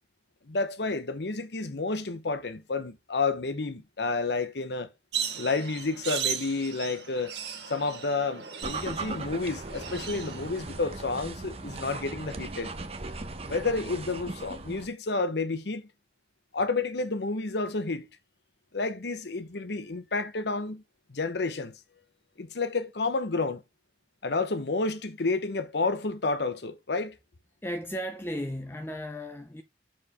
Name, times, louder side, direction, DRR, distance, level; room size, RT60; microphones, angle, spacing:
voice 1, 0.5-4.9 5.4-7.3 7.7-12.7 13.5-15.9 16.5-18.1 18.7-20.8 21.1-21.7 22.4-23.6 24.2-27.1, left 3 dB, 75° left, 0.9 m, -30 dB
sound 1, 5.1-10.8, right 8 dB, 75° right, 1.5 m, -36 dB
sound 2, 8.6-14.9, right 3 dB, 35° right, 0.8 m, -38 dB
voice 2, 27.6-29.6, equal, 15° left, 0.6 m, -35 dB
7.0 x 4.3 x 4.8 m
head